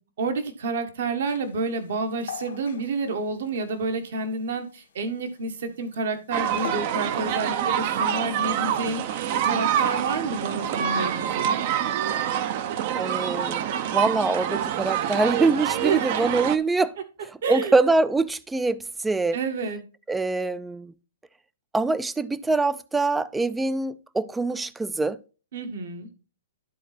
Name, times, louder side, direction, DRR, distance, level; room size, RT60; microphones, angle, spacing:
voice 1, 0.2-9.0 9.4-11.6 15.8-16.0 17.4-17.7 19.3-19.8 25.5-26.1, right 3 dB, 65° right, 1.7 m, -29 dB
sound 1, 1.2-6.9, left 8 dB, 75° left, 1.9 m, -42 dB
sound 2, 6.3-16.6, right 9 dB, 45° right, 0.7 m, -26 dB
voice 2, 12.9-13.6 13.9-16.9 17.3-19.4 20.1-20.9 21.7-25.2, right 3 dB, 5° right, 0.4 m, -24 dB
12.0 x 4.0 x 4.3 m
hypercardioid pair, 140°, 0 cm